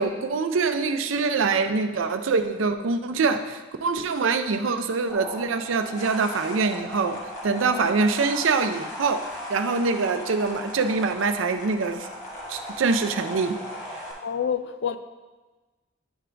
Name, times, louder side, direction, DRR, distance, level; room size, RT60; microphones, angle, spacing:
voice 1, 0.0-9.2 9.5-12.1 12.5-13.6, right 4 dB, 90° right, 0.5 m, -24 dB
sound 1, 5.1-14.1, equal, 40° left, 1.4 m, -37 dB
voice 2, 14.2-15.0, left 8 dB, 60° left, 0.4 m, -27 dB
10.0 x 3.8 x 3.3 m
head